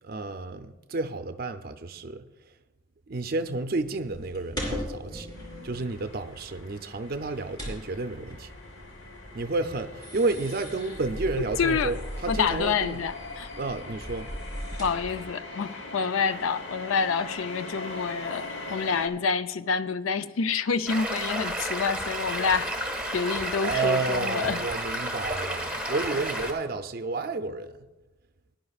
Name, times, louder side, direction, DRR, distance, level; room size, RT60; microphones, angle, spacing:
voice 1, 0.0-2.3 3.1-5.3 5.6-8.5 9.3-13.0 13.6-14.3 23.6-27.8, right 3 dB, 45° right, 0.5 m, -31 dB
Reading disc, 3.8-15.3, equal, 20° left, 3.2 m, -39 dB
sound 1, 5.3-19.1, left 2 dB, 60° left, 1.1 m, -42 dB
voice 2, 11.6-11.9 12.3-13.5 14.8-24.6, left 5 dB, 75° left, 0.4 m, -28 dB
Stream, 20.9-26.5, right 1 dB, 5° right, 1.4 m, -31 dB
18.5 x 10.5 x 2.4 m
head